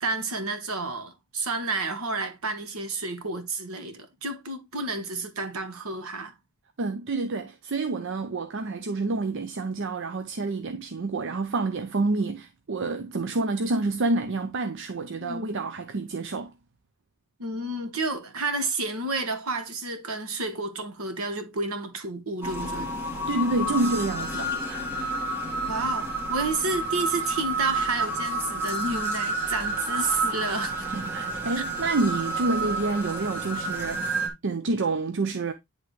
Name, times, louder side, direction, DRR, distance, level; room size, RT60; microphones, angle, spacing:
voice 1, 0.0-6.3 15.2-15.7 17.4-22.9 25.6-30.9 31.6-31.7, right 3 dB, 75° right, 1.4 m, -30 dB
voice 2, 6.8-16.5 23.3-24.9 30.9-34.1 34.4-35.5, right 3 dB, 55° right, 0.6 m, -28 dB
sound 1, 22.4-34.3, right 2 dB, 10° right, 1.7 m, -30 dB
10.0 x 3.6 x 3.1 m
head